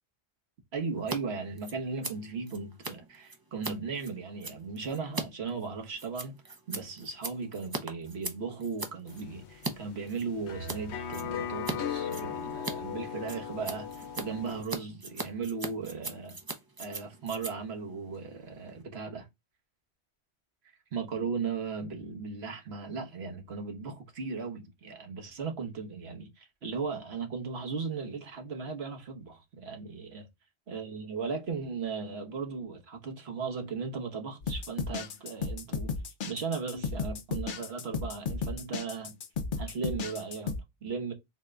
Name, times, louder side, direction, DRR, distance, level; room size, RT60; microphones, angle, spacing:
voice 1, 0.7-16.4 16.8-19.3 20.9-30.3 30.7-35.9 36.2-39.2 39.6-41.1, right 5 dB, 70° right, 1.3 m, -37 dB
Scissors, 1.0-1.2 1.4-9.7 10.1-10.8 11.1-11.8 12.0-18.8, right 3 dB, 25° right, 0.5 m, -40 dB
sound 1, 9.1-14.6, left 7 dB, 80° left, 1.0 m, -37 dB
sound 2, 34.4-40.6, left 5 dB, 55° left, 0.7 m, -34 dB
4.1 x 2.2 x 3.6 m
omnidirectional pair, 1.1 m